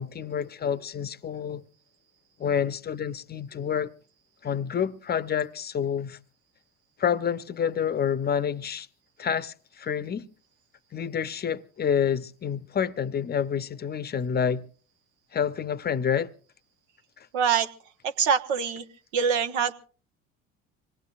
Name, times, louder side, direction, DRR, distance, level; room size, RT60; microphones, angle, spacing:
voice 1, 0.0-1.6 2.4-3.9 4.4-6.2 7.0-8.9 9.2-10.3 10.9-14.6 15.3-16.3 17.2-17.3, left 7 dB, 25° left, 0.8 m, -28 dB
voice 2, 17.3-17.7 18.0-18.8 19.1-19.7, right 7 dB, 70° right, 1.1 m, -24 dB
25.5 x 19.5 x 2.4 m
hypercardioid pair, 65°, 38 cm